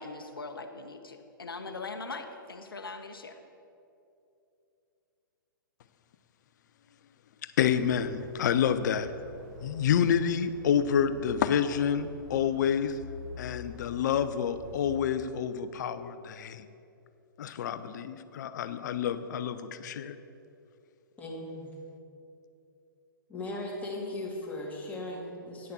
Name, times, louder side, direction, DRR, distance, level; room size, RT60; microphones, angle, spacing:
voice 1, 0.0-3.4, left 3 dB, 80° left, 5 dB, 0.8 m, -41 dB
voice 2, 7.4-9.1 9.6-13.0 13.4-16.7 17.4-20.2, left 8 dB, 55° left, 12 dB, 0.6 m, -28 dB
sound 1, 7.6-15.1, left 2 dB, 45° right, 1.9 m, -47 dB
voice 3, 21.2-21.7 23.3-25.7, left 1 dB, 10° left, -2 dB, 1.9 m, -38 dB
9.5 x 6.6 x 6.7 m, 2.7 s
figure-of-eight pair, 120°, 12 cm